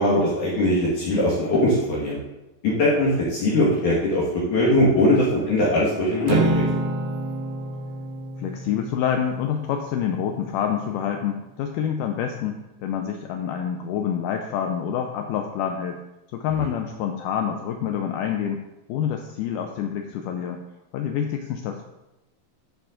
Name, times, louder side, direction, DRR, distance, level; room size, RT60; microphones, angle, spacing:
voice 1, 0.0-2.2 2.6-6.6 16.6-16.7, left 1 dB, 60° left, -6 dB, 3.0 m, -21 dB
Acoustic guitar / Strum, 6.3-10.7, right 2 dB, 75° right, 2.4 m, -29 dB
voice 2, 8.4-16.0 16.3-18.6 18.9-20.6 20.9-21.8, left 8 dB, 80° left, 4 dB, 1.9 m, -27 dB
11.5 x 7.1 x 3.8 m, 0.98 s
omnidirectional pair, 4.4 m